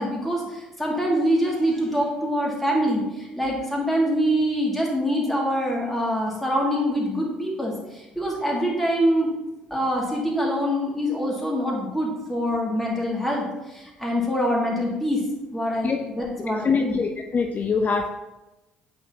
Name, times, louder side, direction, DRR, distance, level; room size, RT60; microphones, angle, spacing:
voice 1, 0.0-9.3 9.7-15.2 15.5-17.0, equal, 5° left, -3 dB, 2.2 m, -25 dB
voice 2, 16.4-18.1, left 5 dB, 35° left, 5 dB, 0.5 m, -24 dB
8.3 x 4.3 x 2.8 m, 1.0 s
hypercardioid pair, 50°, 4 cm